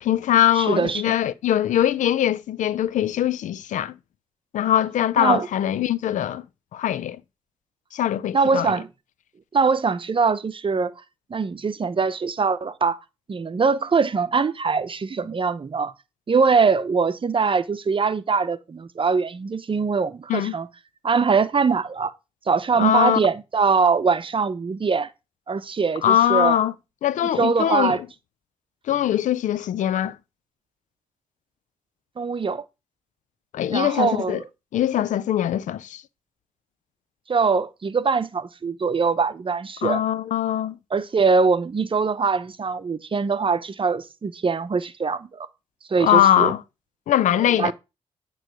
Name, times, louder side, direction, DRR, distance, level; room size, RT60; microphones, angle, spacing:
voice 1, 0.0-3.9 4.5-6.4 6.7-7.2 7.9-8.7 20.3-20.6 22.7-23.2 26.0-26.7 27.0-28.0 28.9-30.2 33.5-34.4 34.7-36.0 39.8-40.8 46.0-46.6 47.1-47.7, left 11 dB, 70° left, 0.4 m, -22 dB
voice 2, 0.6-1.1 5.2-5.5 8.3-8.9 9.5-10.9 11.3-13.0 13.3-15.9 16.3-20.7 21.0-22.1 22.5-25.1 25.5-26.6 27.4-28.0 32.2-32.6 33.7-34.4 37.3-40.0 40.9-45.5 45.9-46.5 47.5-47.7, right 5 dB, 40° right, 0.7 m, -22 dB
8.9 x 3.2 x 6.1 m
hypercardioid pair, 40°, 13 cm